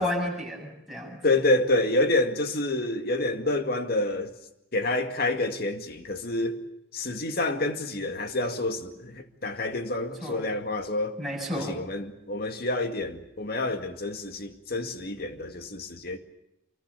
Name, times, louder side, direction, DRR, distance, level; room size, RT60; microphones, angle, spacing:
voice 1, 0.0-1.2 10.2-10.5 11.2-11.8, left 1 dB, ahead, 7.5 m, -31 dB
voice 2, 1.2-4.3 4.7-6.6 6.9-11.2 11.6-16.2, left 2 dB, 55° left, 2.1 m, -28 dB
26.0 x 24.0 x 6.9 m
head